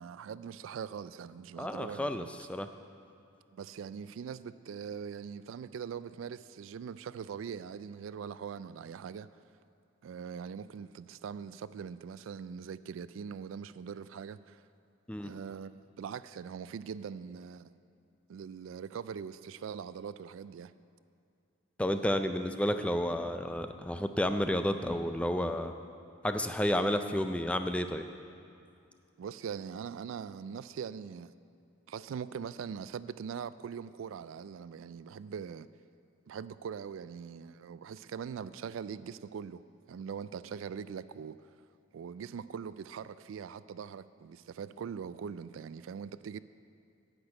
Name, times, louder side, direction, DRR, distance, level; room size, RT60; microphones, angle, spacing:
voice 1, 0.0-2.3 3.5-9.3 10.0-14.6 15.2-17.8 18.3-20.7 26.8-26.9 29.2-31.3 31.9-35.7 36.3-39.6 39.9-41.4 41.9-46.4, right 7 dB, 85° right, 0.3 m, -42 dB
voice 2, 1.6-2.7 15.1-15.3 21.8-25.7 26.2-28.0, left 1 dB, 5° left, 0.4 m, -31 dB
10.0 x 6.2 x 8.7 m
head